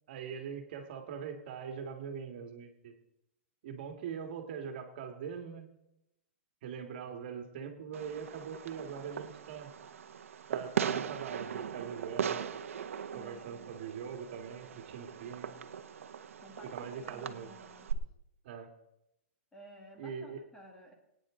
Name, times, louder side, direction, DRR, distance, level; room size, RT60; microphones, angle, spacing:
voice 1, 0.1-2.9 3.6-5.7 6.6-9.7 10.5-12.4 13.1-15.5 16.7-17.5 18.4-18.7 20.0-20.4, right 7 dB, 45° right, 5 dB, 2.0 m, -42 dB
Fireworks, 7.9-17.9, right 8 dB, 80° right, 1.0 m, -39 dB
voice 2, 13.1-13.7 16.4-18.1 19.5-20.9, equal, 10° left, 2 dB, 1.6 m, -54 dB
23.5 x 9.3 x 3.8 m, 0.85 s
hypercardioid pair, 165°, 7 cm